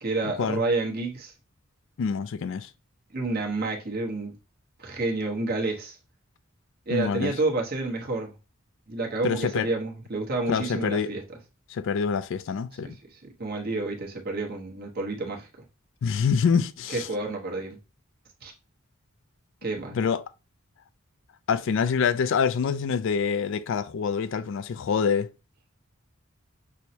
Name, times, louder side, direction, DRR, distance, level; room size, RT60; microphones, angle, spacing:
voice 1, 0.0-1.3 3.1-4.3 4.8-6.0 6.9-8.3 8.9-11.2 12.8-15.5 16.9-17.8 18.4-18.5 19.6-20.0, right 2 dB, 50° right, 1.0 m, -29 dB
voice 2, 2.0-2.7 6.9-7.3 9.2-9.7 10.5-11.1 11.7-13.0 16.0-17.1 19.9-20.2 21.5-25.3, left 6 dB, 65° left, 0.3 m, -26 dB
6.2 x 2.1 x 2.7 m
head